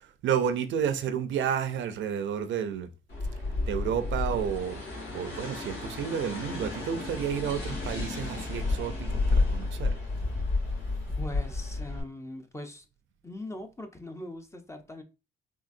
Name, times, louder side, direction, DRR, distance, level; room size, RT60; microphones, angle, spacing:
voice 1, 0.0-2.9 3.7-4.8 5.1-9.9, right 8 dB, 70° right, 0.5 m, -31 dB
sound 1, 3.1-12.0, left 3 dB, 55° left, 1.9 m, -31 dB
voice 2, 11.2-12.9 13.2-15.0, left 1 dB, 15° left, 0.5 m, -41 dB
3.8 x 2.4 x 2.5 m
cardioid pair, 90°, 20 cm